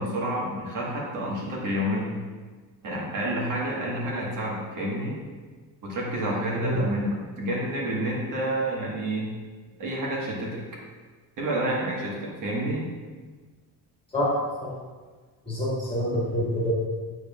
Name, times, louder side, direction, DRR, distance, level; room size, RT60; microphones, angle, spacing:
voice 1, 0.0-2.2 2.8-5.2 5.8-9.3 9.8-10.6 11.4-12.9, right 1 dB, 50° right, -4 dB, 1.4 m, -29 dB
voice 2, 15.5-16.7, left 1 dB, 15° left, -7 dB, 1.8 m, -26 dB
7.2 x 6.2 x 2.4 m, 1.4 s
cardioid pair, 155°, 40 cm